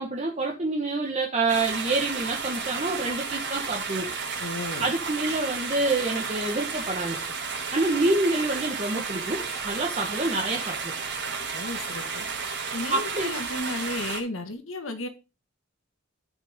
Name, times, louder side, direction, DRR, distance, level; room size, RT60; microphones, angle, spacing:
voice 1, 0.0-4.1 4.8-7.2 7.7-10.9 12.9-13.3, right 2 dB, 35° right, 0 dB, 1.3 m, -27 dB
sound 1, 1.5-14.2, right 5 dB, 60° right, 3.4 m, -32 dB
voice 2, 4.4-4.9 11.5-12.2 12.7-15.1, left 2 dB, 80° left, 8 dB, 1.7 m, -33 dB
13.5 x 6.1 x 3.6 m, 0.29 s
head